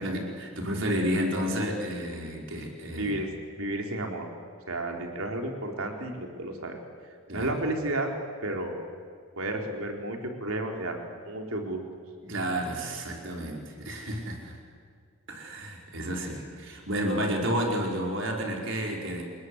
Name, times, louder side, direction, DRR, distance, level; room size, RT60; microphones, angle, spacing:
voice 1, 0.0-3.1 7.3-7.5 12.2-14.6 15.3-19.2, equal, 60° right, 1 dB, 5.1 m, -31 dB
voice 2, 3.0-3.3 3.6-4.3 4.7-6.8 7.3-8.1 8.4-8.8 9.4-11.0 11.3-11.8, right 1 dB, 80° right, 2 dB, 4.1 m, -32 dB
28.5 x 21.5 x 8.2 m, 2.2 s
head